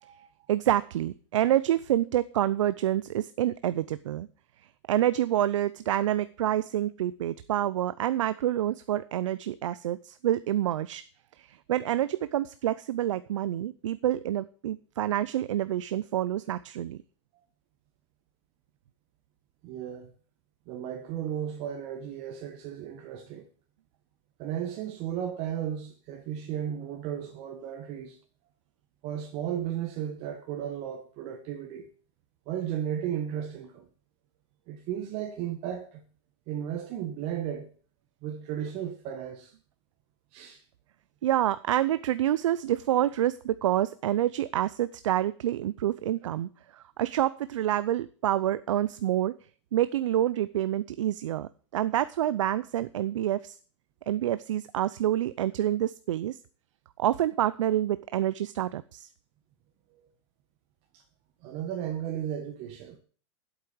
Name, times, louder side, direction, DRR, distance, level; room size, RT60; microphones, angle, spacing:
voice 1, 0.5-4.3 4.9-11.0 11.4-17.0 41.2-49.3 49.7-53.6 54.1-56.4 57.0-59.1, right 12 dB, 80° right, 0.6 m, -27 dB
voice 2, 19.6-20.1 20.7-23.5 24.4-28.2 29.0-31.9 32.5-33.9 34.7-36.0 36.5-37.7 38.2-39.5 40.3-40.6 60.9-61.0 61.4-63.0, right 10 dB, 40° right, 1.5 m, -34 dB
8.3 x 8.1 x 8.5 m
hypercardioid pair, 140°, 16 cm